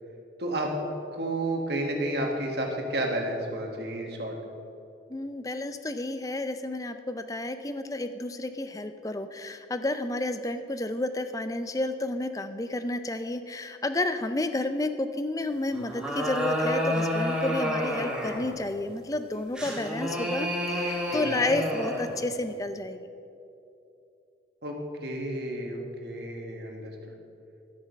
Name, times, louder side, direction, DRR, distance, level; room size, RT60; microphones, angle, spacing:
voice 1, 0.4-0.7 1.1-4.4 21.1-21.4 24.6-27.1, right 1 dB, 55° right, 1 dB, 1.6 m, -31 dB
voice 2, 5.1-23.1, left 2 dB, 20° left, 10 dB, 0.4 m, -31 dB
sound 1, 15.7-18.5 19.5-22.1, equal, 5° right, 1.6 m, -29 dB
12.0 x 6.3 x 6.4 m, 2.7 s
head